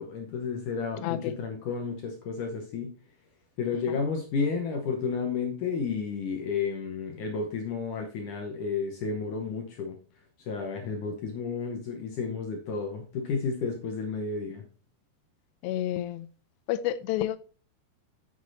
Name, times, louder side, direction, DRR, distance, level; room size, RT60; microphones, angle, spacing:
voice 1, 0.0-2.9 3.6-10.0 10.4-14.6, left 5 dB, 70° left, 2.0 m, -32 dB
voice 2, 1.0-1.4 15.6-16.3 16.7-17.4, left 12 dB, 90° left, 2.8 m, -29 dB
8.2 x 6.5 x 4.0 m
omnidirectional pair, 4.8 m